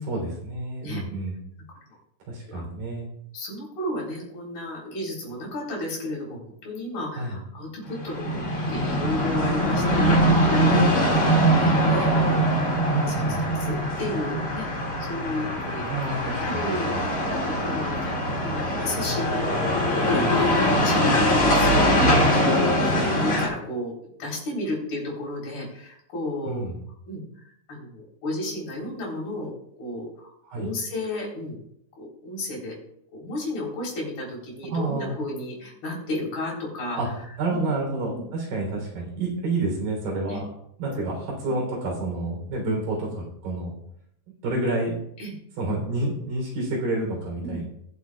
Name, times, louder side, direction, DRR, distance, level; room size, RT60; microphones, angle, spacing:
voice 1, 0.1-1.4 2.3-3.1 7.2-7.4 12.8-13.4 15.9-17.1 20.0-20.5 26.5-26.8 30.5-30.7 34.7-35.2 37.0-37.1 37.4-40.4 40.8-43.8 44.4-45.0 45.6-47.6, right 2 dB, 75° right, -1 dB, 5.3 m, -29 dB
voice 2, 2.5-2.8 3.3-10.2 10.5-12.7 13.0-14.7 15.0-16.9 17.3-22.3 22.7-26.7 27.1-31.6 32.0-32.8 33.1-37.0 37.5-37.7 38.1-38.2 40.3-40.4 40.9-41.0 41.5-41.6 42.6-42.8 45.2-45.3 47.4-47.6, left 1 dB, 85° left, -3 dB, 5.7 m, -33 dB
sound 1, 7.9-23.5, equal, 30° left, 2.0 m, -22 dB
20.5 x 7.4 x 2.3 m, 0.73 s
omnidirectional pair, 4.2 m